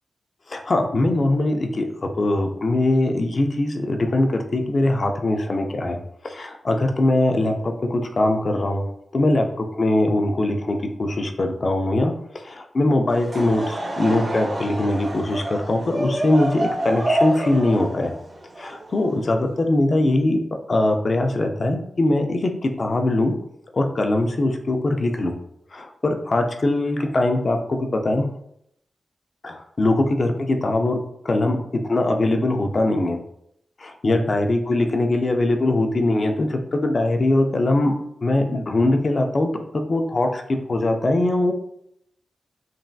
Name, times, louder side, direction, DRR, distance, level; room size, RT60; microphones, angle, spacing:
voice 1, 0.5-8.9 9.1-18.1 18.6-20.4 20.7-23.4 23.7-25.3 25.7-28.3 29.4-31.0 31.2-31.6 31.8-33.2 33.8-37.9 38.2-41.5, left 2 dB, 45° left, 4 dB, 0.4 m, -21 dB
Laughter / Crowd, 13.1-19.5, right 1 dB, 50° right, 0.7 m, -28 dB
3.2 x 2.6 x 2.3 m, 0.73 s
wide cardioid pair, 115°, 0 cm